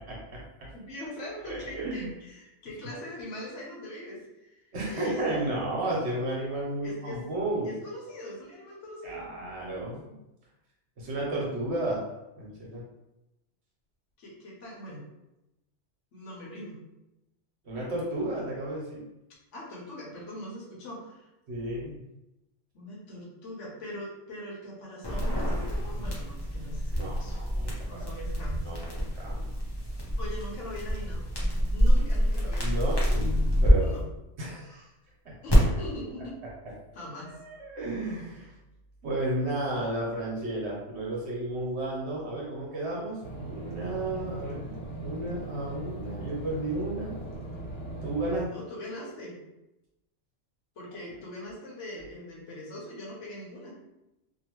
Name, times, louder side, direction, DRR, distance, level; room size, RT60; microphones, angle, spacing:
voice 1, 0.7-4.6 4.9-5.4 6.8-7.2 7.6-9.3 14.2-15.0 16.1-16.8 19.5-21.3 22.7-27.4 27.8-28.6 30.2-31.3 31.7-33.0 33.7-34.1 35.4-36.4 36.9-37.4 48.4-49.4 50.8-53.8, left 1 dB, 85° left, -4 dB, 1.3 m, -41 dB
voice 2, 1.5-2.1 4.7-7.7 9.0-10.2 11.0-12.0 12.3-12.8 17.6-19.0 21.5-22.0 26.9-28.1 28.6-29.5 32.6-33.3 33.6-33.9 34.4-34.9 35.2-35.3 37.3-38.5 39.0-44.7 45.0-47.2 48.0-48.5, right 1 dB, 65° right, -3 dB, 1.1 m, -33 dB
sound 1, 25.0-33.7 35.5-35.6, equal, 25° left, 0.7 m, -27 dB
sound 2, 43.2-48.5, right 2 dB, 65° left, 1.0 m, -39 dB
2.7 x 2.6 x 2.9 m, 0.93 s
omnidirectional pair, 1.2 m